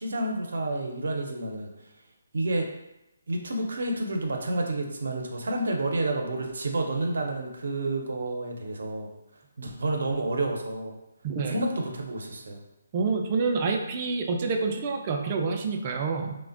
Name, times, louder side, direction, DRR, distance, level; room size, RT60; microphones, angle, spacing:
voice 1, 0.0-1.7 2.3-2.7 3.3-9.1 9.6-11.0 11.5-12.6, right 2 dB, 70° right, 2 dB, 0.6 m, -29 dB
voice 2, 11.2-11.6 12.9-16.4, right 4 dB, 30° right, 2 dB, 0.3 m, -27 dB
3.1 x 2.1 x 2.5 m, 0.92 s
hypercardioid pair, 165°, 0 cm